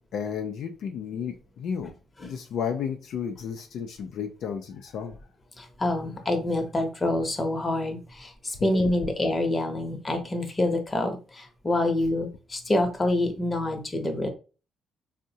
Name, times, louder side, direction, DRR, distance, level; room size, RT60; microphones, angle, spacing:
voice 1, 0.1-1.9 2.2-5.2 8.6-8.9, left 7 dB, 75° left, 5 dB, 0.4 m, -33 dB
voice 2, 5.6-14.3, left 1 dB, 25° left, 4 dB, 0.8 m, -27 dB
3.5 x 2.1 x 2.7 m, 0.34 s
cardioid pair, 90°, 0 cm